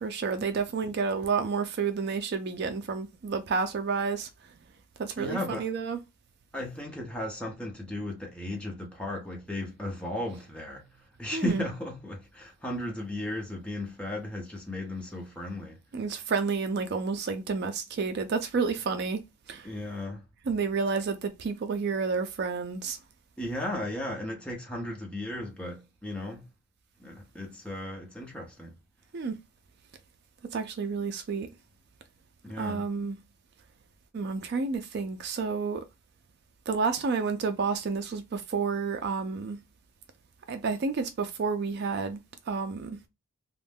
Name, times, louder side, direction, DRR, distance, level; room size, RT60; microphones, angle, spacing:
voice 1, 0.0-4.3 5.0-6.0 11.3-11.6 15.9-19.2 19.5-19.7 20.5-23.0 29.1-29.4 30.5-31.5 32.6-33.2 34.1-35.8 36.7-39.6 40.5-42.2 42.5-43.0, right 5 dB, 50° right, 0.3 m, -30 dB
voice 2, 5.2-5.7 6.5-10.8 11.2-15.8 19.6-20.2 23.4-26.4 27.0-28.8 32.4-32.9, left 1 dB, 5° left, 0.7 m, -35 dB
2.5 x 2.1 x 3.4 m
head